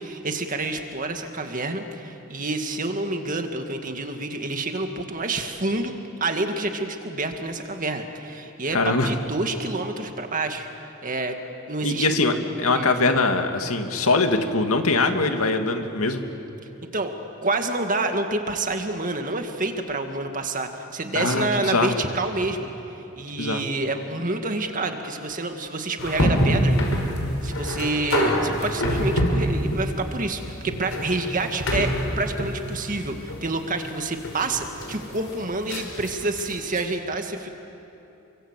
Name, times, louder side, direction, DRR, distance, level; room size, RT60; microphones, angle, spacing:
voice 1, 0.0-5.9 6.2-10.7 11.0-11.4 11.7-12.1 12.8-12.9 16.9-17.1 17.4-22.7 23.2-27.0 27.4-31.9 32.2-37.5, right 2 dB, 40° right, 5 dB, 2.0 m, -28 dB
voice 2, 8.7-9.1 11.8-16.2 21.1-21.9 23.4-23.6, left 3 dB, 90° left, 5 dB, 2.3 m, -22 dB
sound 1, 26.0-36.8, equal, 70° left, 5.3 m, -26 dB
29.5 x 24.0 x 8.3 m, 2.9 s
head